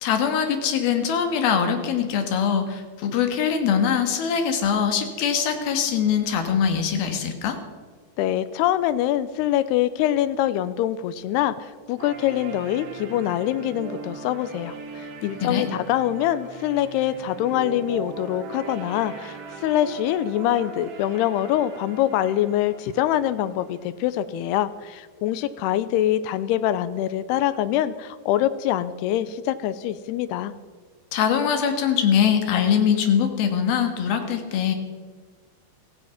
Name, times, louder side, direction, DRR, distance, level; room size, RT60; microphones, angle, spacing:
voice 1, 0.0-7.6 15.2-15.7 31.1-34.7, left 7 dB, 65° left, 6 dB, 3.1 m, -22 dB
voice 2, 8.2-30.5, left 12 dB, 80° left, 13 dB, 2.4 m, -24 dB
sound 1, 12.0-24.0, right 5 dB, 75° right, 4.2 m, -39 dB
16.0 x 15.5 x 5.8 m, 1.5 s
omnidirectional pair, 5.2 m